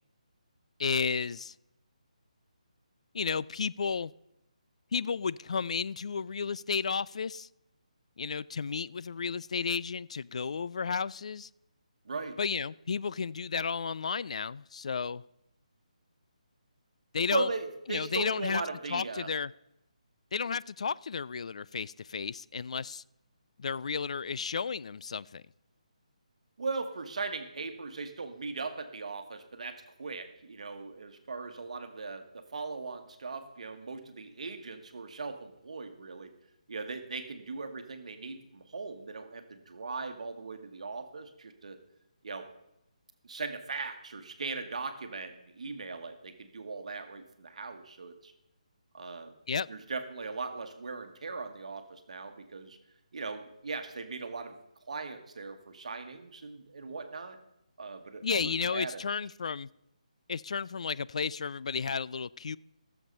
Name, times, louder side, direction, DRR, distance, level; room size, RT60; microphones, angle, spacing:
voice 1, 0.8-1.5 3.1-4.1 4.9-7.5 8.2-11.5 12.4-15.2 17.1-17.5 17.9-18.6 18.9-19.5 20.3-23.0 23.6-25.4 49.5-49.7 58.2-59.7 60.3-62.6, left 5 dB, 55° left, 0.3 m, -32 dB
voice 2, 12.0-12.4 17.3-19.3 26.6-36.3 36.7-41.8 42.2-42.5 43.2-48.3 48.9-49.4 49.7-52.8 53.1-54.6 54.9-57.4 57.8-59.0, right 4 dB, 60° right, 1.4 m, -39 dB
14.5 x 7.3 x 5.4 m
hypercardioid pair, 165°, 4 cm